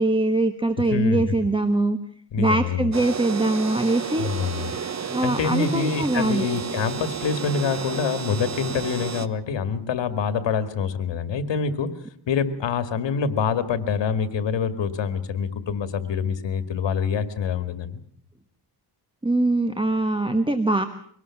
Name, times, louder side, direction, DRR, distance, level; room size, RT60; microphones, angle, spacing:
voice 1, 0.0-2.0 2.4-4.3 5.1-6.5 19.2-20.8, right 2 dB, 10° right, 8 dB, 1.3 m, -22 dB
voice 2, 0.9-1.2 2.3-2.9 4.2-11.9 12.3-18.0, left 6 dB, 85° left, 11 dB, 2.1 m, -26 dB
sound 1, 2.9-9.3, right 6 dB, 40° right, 1.1 m, -32 dB
24.0 x 19.0 x 7.1 m, 0.62 s
wide cardioid pair, 125°, 43 cm